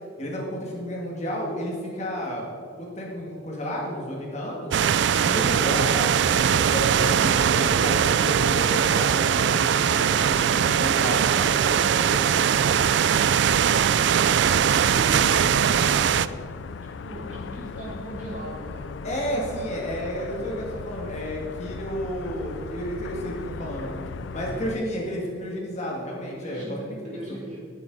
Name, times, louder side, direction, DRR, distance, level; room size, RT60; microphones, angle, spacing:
voice 1, 0.2-2.5 2.8-4.9 5.2-6.1 6.4-11.6 12.0-12.1 19.0-23.9 24.3-27.2, equal, 35° left, -3 dB, 2.0 m, -32 dB
sound 1, 4.7-16.3, right 8 dB, 60° right, 0.3 m, -21 dB
sound 2, 15.1-24.8, left 4 dB, 70° left, 0.4 m, -37 dB
voice 2, 16.8-18.9 24.4-24.7 26.4-27.6, equal, 40° right, -5 dB, 3.2 m, -40 dB
12.5 x 9.4 x 4.0 m, 2.3 s
head